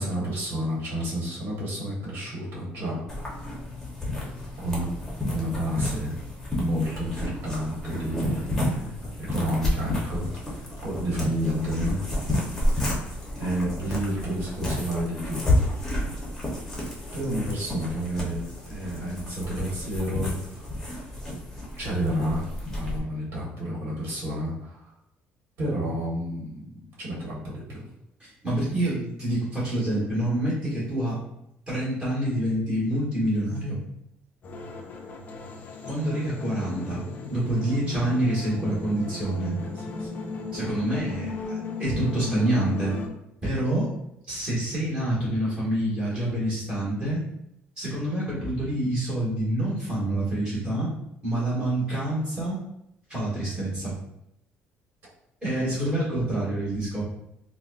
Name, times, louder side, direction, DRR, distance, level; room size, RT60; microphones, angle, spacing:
voice 1, 0.0-3.3 4.6-4.9 5.3-6.1 6.6-12.5 13.4-15.5 17.1-20.7 21.8-22.4 22.7-24.9 25.6-26.7 27.0-27.8 39.6-40.3, equal, 60° right, -6 dB, 1.4 m, -30 dB
sound 1, 3.1-23.0, left 1 dB, 10° left, 0.8 m, -31 dB
voice 2, 28.2-31.2 31.7-33.8 35.9-37.0 37.3-39.6 40.5-42.9 43.4-43.9 44.3-47.2 47.8-50.9 51.2-52.6 53.1-54.0 55.4-57.0, right 1 dB, 20° right, -9 dB, 1.5 m, -27 dB
sound 2, 34.4-43.1, left 4 dB, 45° left, 0.4 m, -36 dB
4.0 x 2.2 x 2.5 m, 0.81 s
cardioid pair, 145°, 4 cm